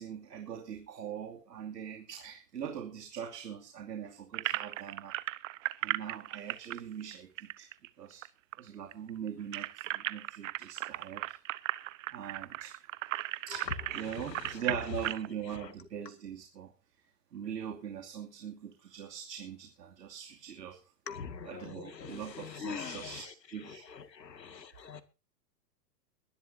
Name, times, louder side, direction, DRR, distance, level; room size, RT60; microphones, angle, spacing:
voice 1, 0.0-5.2 5.8-7.7 8.0-8.3 8.6-11.4 12.1-12.8 13.5-13.7 13.9-16.7 17.3-20.8 21.4-23.9, right 8 dB, 75° right, 2.8 m, -42 dB
sound 1, 4.3-8.3 8.5-8.6 8.9-15.3, right 15 dB, 50° right, 1.0 m, -36 dB
voice 2, 21.1-23.3 23.9-25.0, left 6 dB, 80° left, 2.2 m, -43 dB
22.0 x 12.0 x 2.7 m
figure-of-eight pair, 110°, 50 cm